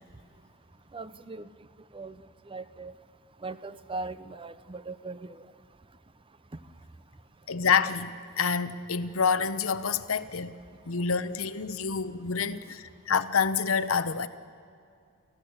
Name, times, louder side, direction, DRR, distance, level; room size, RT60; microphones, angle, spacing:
voice 1, 0.9-1.7 1.9-2.9 3.4-5.5, right 3 dB, 25° right, 14 dB, 0.7 m, -40 dB
voice 2, 7.5-10.5 10.8-14.3, left 6 dB, 70° left, 12 dB, 0.9 m, -27 dB
30.0 x 15.0 x 8.1 m, 2.4 s
head